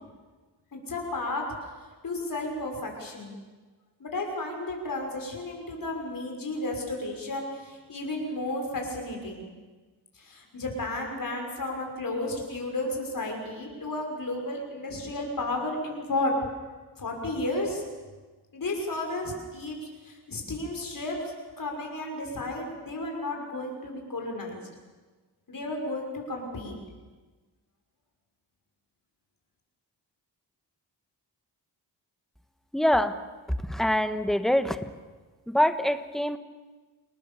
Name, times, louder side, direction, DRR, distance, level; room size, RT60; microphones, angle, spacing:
voice 1, 0.7-1.4 2.0-3.4 4.0-9.5 10.1-16.3 17.0-17.8 18.5-19.8 20.0-24.7 25.5-26.8, left 2 dB, 55° left, 1 dB, 6.0 m, -33 dB
voice 2, 32.7-33.2 33.7-34.8 35.5-36.4, left 1 dB, ahead, 10 dB, 1.3 m, -24 dB
29.0 x 19.0 x 7.2 m, 1.3 s
cardioid pair, 85°, 40 cm